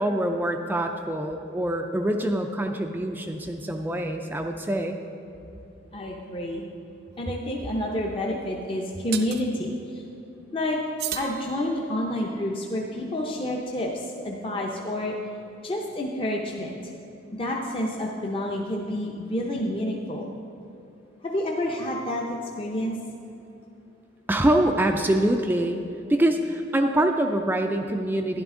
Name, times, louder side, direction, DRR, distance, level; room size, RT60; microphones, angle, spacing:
voice 1, 0.0-5.0 24.3-25.8 26.1-28.4, right 1 dB, 10° right, 4 dB, 0.4 m, -24 dB
voice 2, 5.9-6.6 7.2-10.0 10.5-10.8 11.1-15.1 15.6-16.8 17.3-20.3 21.2-22.2 22.6-22.9, left 1 dB, 30° left, -1 dB, 0.7 m, -29 dB
sound 1, 7.1-7.3 9.1-9.5 11.0-12.1, right 10 dB, 55° right, 0.6 m, -35 dB
11.5 x 10.5 x 3.7 m, 2.8 s
head